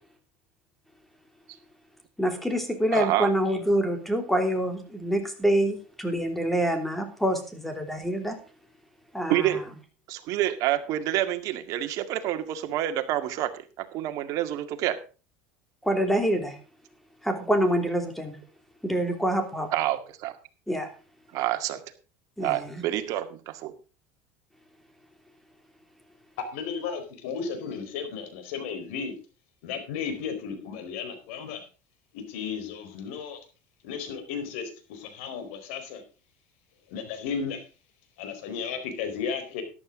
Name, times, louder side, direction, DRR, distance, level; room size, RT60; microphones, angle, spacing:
voice 1, 2.2-8.4 9.1-9.6 15.8-16.6 17.2-18.4 18.8-19.7 20.7-20.9 22.4-22.8, equal, 5° left, 6 dB, 3.1 m, -26 dB
voice 2, 2.9-3.3 9.3-9.6 10.1-15.0 19.7-20.4 21.3-21.8 22.4-23.7, right 13 dB, 60° right, 8 dB, 1.9 m, -28 dB
voice 3, 26.5-29.1 29.6-31.6 32.1-33.4 33.8-36.0 36.9-37.6 38.2-39.6, left 6 dB, 80° left, 8 dB, 4.4 m, -34 dB
14.0 x 11.5 x 3.8 m, 0.34 s
supercardioid pair, 120°, 7 cm